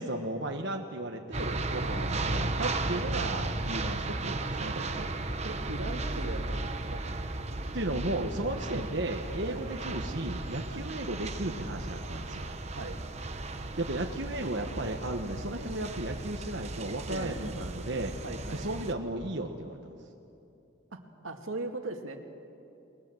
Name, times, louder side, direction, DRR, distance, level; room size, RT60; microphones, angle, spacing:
voice 1, 0.0-5.0 7.7-12.5 13.8-18.2 18.5-19.8, right 1 dB, 60° right, 2 dB, 1.3 m, -35 dB
sound 1, 1.3-18.9, right 2 dB, 30° right, 1.1 m, -35 dB
voice 2, 5.4-7.0 9.4-9.6 10.7-10.8 12.6-13.0 17.1-17.6 18.2-18.6 20.9-22.2, right 2 dB, 85° right, 4 dB, 2.2 m, -39 dB
29.5 x 20.5 x 7.9 m, 2.7 s
head